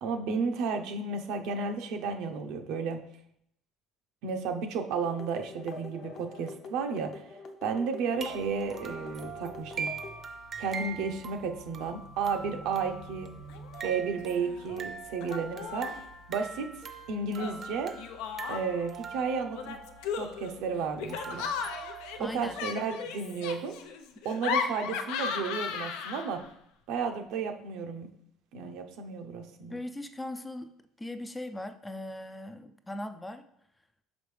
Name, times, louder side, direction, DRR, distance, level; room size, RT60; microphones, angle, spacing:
voice 1, 0.0-3.0 4.2-7.2 7.6-9.9 10.6-13.3 13.8-15.9 16.3-16.7 17.1-17.9 18.5-19.8 20.1-21.5 22.3-23.8 24.2-26.4 26.9-28.1 28.5-29.8, right 5 dB, 75° right, 5 dB, 0.7 m, -32 dB
sound 1, 5.0-10.2, left 3 dB, 40° left, 0.7 m, -45 dB
sound 2, 8.2-22.5, right 5 dB, 35° right, 0.6 m, -43 dB
Laughter, 13.5-13.9 14.2-14.8 15.2-16.1 17.4-18.9 19.5-26.5, left 6 dB, 85° left, 0.6 m, -36 dB
voice 2, 22.2-22.6 29.7-30.7 31.0-33.5, left 1 dB, 10° left, 10 dB, 0.3 m, -39 dB
5.9 x 5.1 x 3.2 m, 0.72 s
cardioid pair, 145°, 0 cm